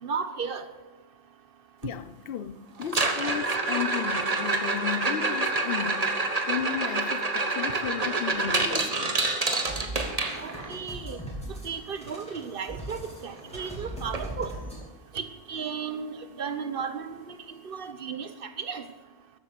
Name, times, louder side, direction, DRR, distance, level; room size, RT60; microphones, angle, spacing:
voice 1, 0.0-0.7 10.4-11.2 11.6-14.5 15.1-17.4 17.6-18.9, right 6 dB, 55° right, 1.2 m, -34 dB
voice 2, 1.8-6.1 6.5-9.2, left 9 dB, 60° left, 0.8 m, -34 dB
sound 1, 2.8-10.8 13.0-13.1 13.4-13.7 14.1-14.2 14.8-14.9 16.8-16.9, right 3 dB, 35° right, 1.3 m, -27 dB
sound 2, 9.6-14.8, right 1 dB, 5° left, 3.5 m, -40 dB
13.5 x 11.5 x 6.7 m
omnidirectional pair, 1.1 m